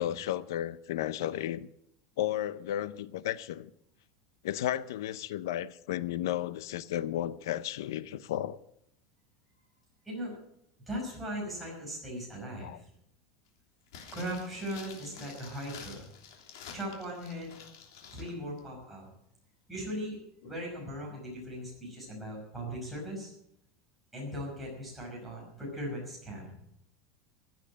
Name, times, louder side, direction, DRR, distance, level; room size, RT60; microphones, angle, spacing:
voice 1, 0.0-1.7 2.2-3.7 4.4-8.6 12.6-12.8, left 12 dB, 90° left, 0.7 m, -33 dB
voice 2, 10.9-12.9 14.1-16.1 16.7-17.5 18.1-19.1 19.7-23.3 24.1-26.5, equal, ahead, 5.8 m, -39 dB
sound 1, 13.9-18.3 18.6-18.7, left 7 dB, 75° left, 3.3 m, -49 dB
15.5 x 9.0 x 7.5 m
supercardioid pair, 180°, 2 cm